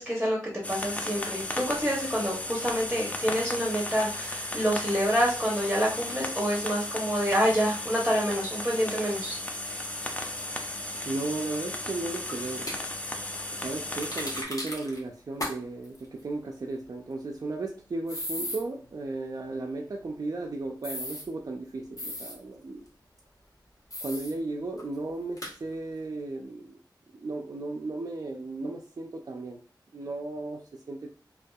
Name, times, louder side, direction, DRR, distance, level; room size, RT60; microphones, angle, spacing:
voice 1, 0.0-9.4, equal, ahead, -3 dB, 0.8 m, -27 dB
sound 1, 0.6-14.4, left 1 dB, 20° left, 0.4 m, -35 dB
voice 2, 11.0-12.7 13.5-22.8 24.0-26.8 27.1-29.6 29.9-31.1, right 2 dB, 50° right, 0 dB, 0.3 m, -35 dB
sound 2, 12.3-12.8 14.0-15.0 15.4-15.5 15.8-16.0 18.1-18.6 20.8-21.2 22.0-22.3 23.9-24.3 24.8-24.9 25.4-25.5, left 1 dB, 50° left, 0.9 m, -35 dB
2.6 x 2.3 x 2.2 m, 0.40 s
wide cardioid pair, 65°, 8 cm